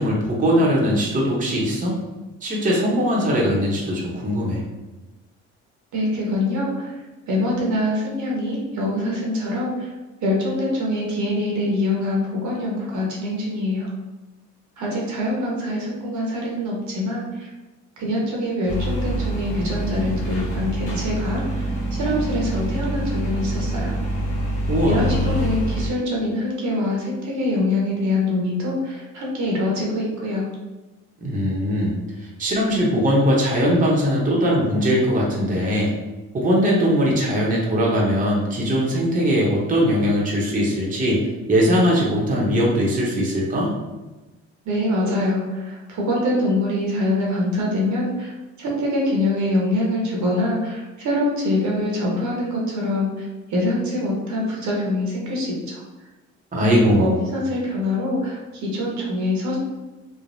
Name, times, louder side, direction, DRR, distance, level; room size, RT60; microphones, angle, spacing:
voice 1, 0.0-2.0 2.4-4.6 24.7-25.0 31.2-35.9 36.3-41.2 41.5-43.7 56.5-57.2, equal, 25° right, -4 dB, 0.7 m, -20 dB
voice 2, 5.9-6.9 7.3-9.9 10.2-13.9 14.8-17.5 18.0-24.0 24.9-30.5 44.6-48.3 48.6-55.8 56.7-59.6, left 1 dB, 70° right, -2 dB, 0.9 m, -24 dB
sound 1, 18.7-25.9, right 1 dB, 85° left, 0.7 m, -25 dB
3.2 x 2.0 x 2.6 m, 1.1 s
cardioid pair, 90°, 30 cm